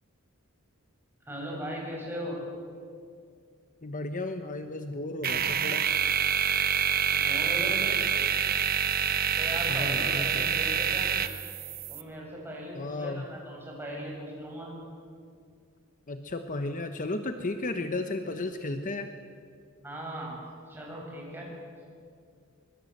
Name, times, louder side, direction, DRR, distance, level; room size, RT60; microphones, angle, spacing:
voice 1, 1.3-2.4 7.1-8.0 9.4-11.1 11.9-14.7 19.8-20.4 20.7-21.5, equal, 10° right, -3 dB, 7.0 m, -38 dB
voice 2, 3.8-5.9 9.7-10.5 12.7-13.3 16.1-19.1, left 2 dB, 40° left, 8 dB, 1.0 m, -34 dB
sound 1, 5.2-12.0, right 8 dB, 45° right, 1.0 m, -27 dB
24.5 x 22.0 x 7.9 m, 2.3 s
head